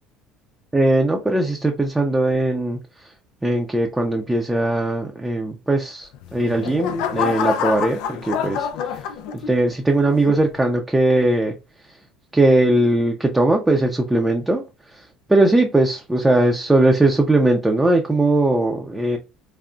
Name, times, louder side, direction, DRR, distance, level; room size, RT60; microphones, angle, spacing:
voice 1, 0.7-3.1 3.4-12.0 12.3-19.2, right 2 dB, 10° right, 0.5 m, -20 dB
sound 1, 6.1-9.7 10.3-10.6, left 7 dB, 75° left, 0.4 m, -26 dB
3.7 x 2.0 x 2.3 m
supercardioid pair, 90°, 0 cm